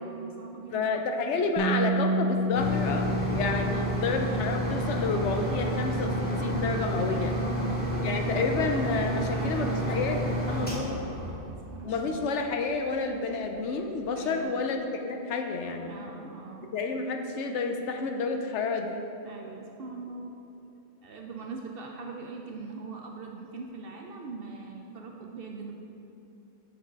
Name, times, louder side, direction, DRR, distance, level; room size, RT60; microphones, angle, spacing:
voice 1, 0.0-1.0 7.1-8.5 9.0-9.9 10.5-12.3 14.2-14.6 15.9-16.7 19.2-20.4 21.0-25.8, right 4 dB, 60° right, 1 dB, 0.6 m, -42 dB
voice 2, 0.7-7.3 8.0-11.0 11.8-15.9 16.7-19.1, left 4 dB, 70° left, 4 dB, 0.8 m, -30 dB
Bass guitar, 1.6-7.8, equal, 40° left, 0.3 m, -32 dB
sound 1, 2.5-12.0 12.7-12.8 13.2-13.3, right 1 dB, 10° left, 0.9 m, -30 dB
6.1 x 4.8 x 4.5 m, 3.0 s
omnidirectional pair, 1.3 m